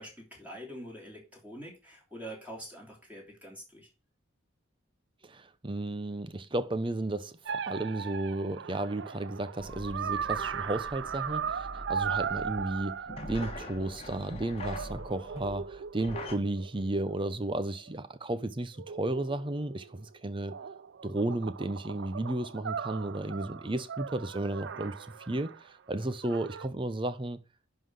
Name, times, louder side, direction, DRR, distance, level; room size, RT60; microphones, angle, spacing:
voice 1, 0.0-3.9, equal, 5° right, 3.1 m, -45 dB
voice 2, 5.2-13.0 13.3-20.5 21.0-27.4, right 2 dB, 25° right, 0.7 m, -33 dB
sound 1, 7.5-14.2 14.6-17.9 18.8-20.1 20.5-25.6 26.2-26.7, right 7 dB, 60° right, 0.4 m, -38 dB
sound 2, 9.6-16.4, left 1 dB, 30° left, 1.4 m, -44 dB
10.5 x 3.9 x 6.3 m
head